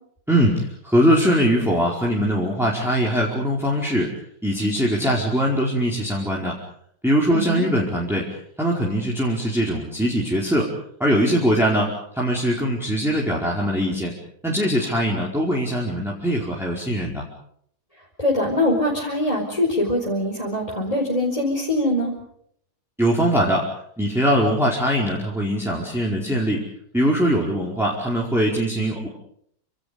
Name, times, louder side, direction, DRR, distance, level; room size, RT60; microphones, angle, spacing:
voice 1, 0.3-4.1 4.4-6.5 7.0-8.3 8.6-10.7 11.0-14.1 14.4-17.2 23.0-23.7 24.0-26.6 26.9-29.1, equal, ahead, -4 dB, 4.8 m, -21 dB
voice 2, 7.3-7.6 18.2-22.1, left 1 dB, 15° left, -2 dB, 5.0 m, -23 dB
29.0 x 27.0 x 5.3 m, 0.68 s
omnidirectional pair, 2.3 m